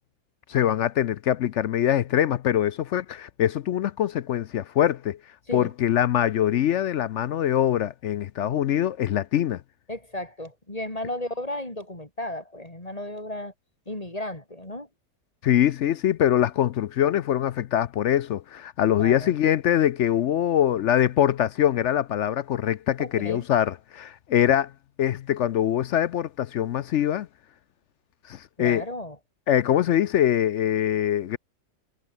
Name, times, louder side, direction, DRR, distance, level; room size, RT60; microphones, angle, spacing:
voice 1, 0.5-5.2 5.5-9.6 15.4-24.7 25.0-27.3 28.3-28.8 29.5-31.4, left 11 dB, 65° left, 0.7 m, -23 dB
voice 2, 9.9-13.5 13.9-14.9 18.9-19.3 23.0-23.5 28.6-29.2, left 1 dB, 25° left, 3.9 m, -34 dB
omnidirectional pair, 1.7 m